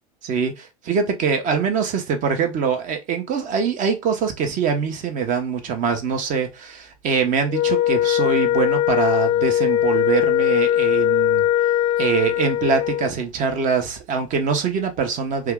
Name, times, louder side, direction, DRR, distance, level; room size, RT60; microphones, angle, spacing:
voice 1, 0.2-11.5 12.0-15.5, right 6 dB, 45° right, 0.9 m, -23 dB
Wind instrument woodwind instrument, 7.5-13.1, left 12 dB, 55° left, 0.4 m, -20 dB
2.8 x 2.3 x 3.5 m
hypercardioid pair, 95°, 19 cm